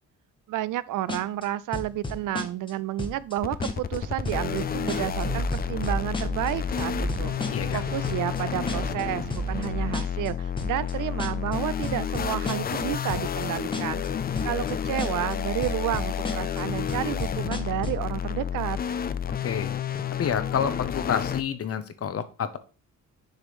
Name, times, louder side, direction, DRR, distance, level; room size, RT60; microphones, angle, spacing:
voice 1, 0.5-7.4 7.7-14.0 14.4-18.8, right 14 dB, 80° right, 0.5 m, -31 dB
sound 1, 1.1-1.5 1.7-2.7 3.0-3.3 3.6-4.0 4.3-4.6 4.9-5.2 5.5-6.5 6.8-8.4 8.7-9.0 9.3-9.7 9.9-10.3 10.6-10.9 11.2-11.6 11.8-12.8 13.1-13.5 13.7-14.1 14.4-14.7 15.0-15.3 15.6-16.6 16.9-18.1, left 2 dB, 15° left, 0.9 m, -33 dB
sound 2, 3.4-21.4, left 8 dB, 30° left, 0.4 m, -30 dB
sound 3, 4.0-10.0, right 3 dB, 30° right, 0.8 m, -35 dB
voice 2, 7.5-7.8 19.4-19.7 20.2-22.6, left 8 dB, 50° left, 0.8 m, -29 dB
6.6 x 3.1 x 4.9 m
cardioid pair, 130°, 31 cm